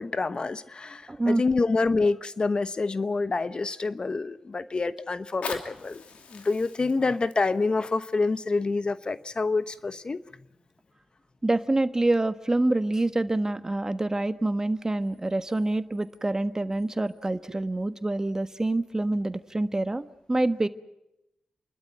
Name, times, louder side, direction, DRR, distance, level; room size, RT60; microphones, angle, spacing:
voice 1, 0.0-6.0 6.3-10.2, left 3 dB, 45° left, 13 dB, 1.0 m, -27 dB
voice 2, 1.1-1.4 11.4-20.7, right 2 dB, 25° right, 11 dB, 1.4 m, -26 dB
Fire, 5.2-10.1 10.8-10.9, left 5 dB, 80° left, 2.9 m, -43 dB
29.0 x 12.5 x 9.3 m, 0.91 s
supercardioid pair, 40°, 2 cm